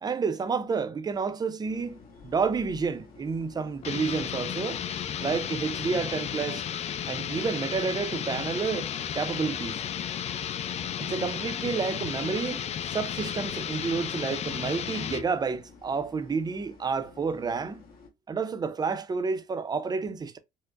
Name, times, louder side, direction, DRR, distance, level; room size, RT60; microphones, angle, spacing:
voice 1, 0.0-4.8 5.2-6.6 7.1-9.8 11.0-17.8 18.3-20.4, right 5 dB, 25° right, 0.5 m, -30 dB
sound 1, 1.6-18.1, left 4 dB, 60° left, 1.1 m, -52 dB
sound 2, 3.8-15.3, left 9 dB, 40° left, 0.4 m, -33 dB
4.5 x 2.0 x 2.4 m
cardioid pair, 110°, 17 cm